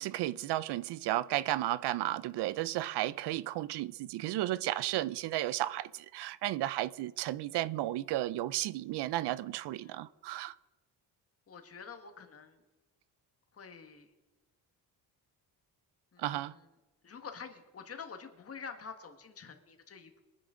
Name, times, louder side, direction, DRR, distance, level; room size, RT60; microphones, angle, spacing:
voice 1, 0.0-10.5 16.2-16.5, right 15 dB, 85° right, 0.6 m, -33 dB
voice 2, 11.5-12.6 13.5-14.1 16.1-16.6 17.0-20.2, left 6 dB, 35° left, 1.5 m, -48 dB
22.5 x 9.9 x 3.8 m
cardioid pair, 145°, 39 cm